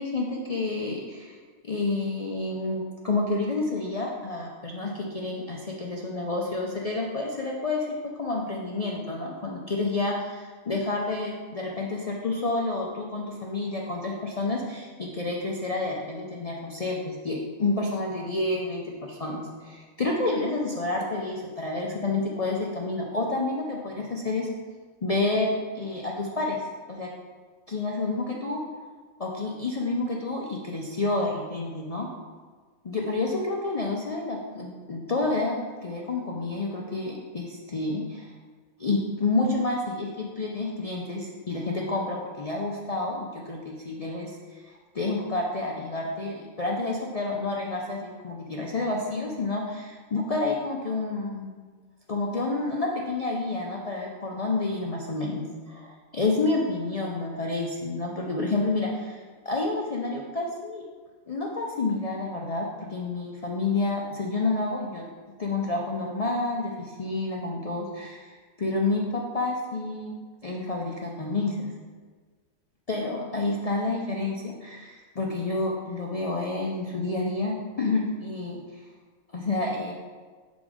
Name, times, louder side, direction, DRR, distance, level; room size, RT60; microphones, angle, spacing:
voice 1, 0.0-1.4 1.6-7.9 8.1-24.5 25.0-26.6 26.9-27.1 27.7-28.6 29.2-32.1 32.8-38.3 38.8-51.5 52.1-60.8 61.3-65.0 65.4-71.7 72.9-78.8 79.3-79.9, left 2 dB, 70° left, -2 dB, 0.3 m, -29 dB
6.2 x 4.0 x 4.9 m, 1.5 s
omnidirectional pair, 1.5 m